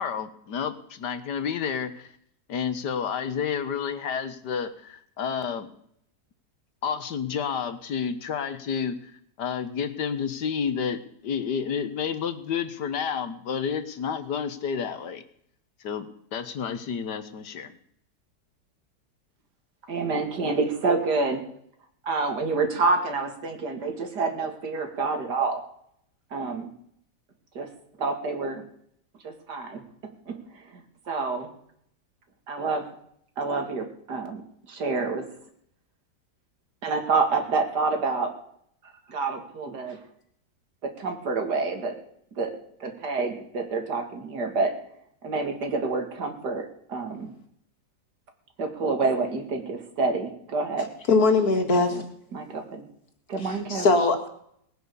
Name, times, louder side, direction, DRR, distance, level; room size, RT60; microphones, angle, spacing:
voice 1, 0.0-2.1 2.5-5.7 6.8-9.1 9.4-15.2 15.8-17.7, left 7 dB, 75° left, 11 dB, 1.7 m, -30 dB
voice 2, 19.9-21.4 22.0-25.6 26.3-26.7 27.5-27.7 28.0-28.6 29.2-29.8 30.3-31.5 32.5-32.9 33.4-34.4 34.7-35.3 36.8-38.3 39.1-40.0 40.8-42.0 42.4-44.8 45.2-47.3 48.6-50.9 51.9-52.0 52.3-52.9 53.3-53.9, right 4 dB, 70° right, 6 dB, 2.7 m, -28 dB
voice 3, 51.1-52.0 53.4-54.3, left 3 dB, 60° left, 5 dB, 2.5 m, -21 dB
19.0 x 9.6 x 6.8 m, 0.68 s
omnidirectional pair, 1.9 m